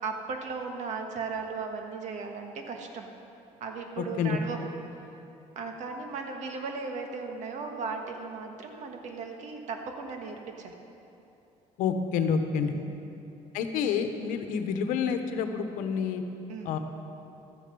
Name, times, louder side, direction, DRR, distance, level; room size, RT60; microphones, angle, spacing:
voice 1, 0.0-3.1 3.6-4.7 5.5-10.7 12.6-13.0 16.5-16.8, right 4 dB, 65° right, 3 dB, 1.6 m, -36 dB
voice 2, 4.0-4.4 11.8-12.7 13.5-16.2 16.6-16.8, left 6 dB, 85° left, 7 dB, 1.0 m, -28 dB
13.0 x 10.0 x 5.4 m, 2.9 s
cardioid pair, 110°, 13 cm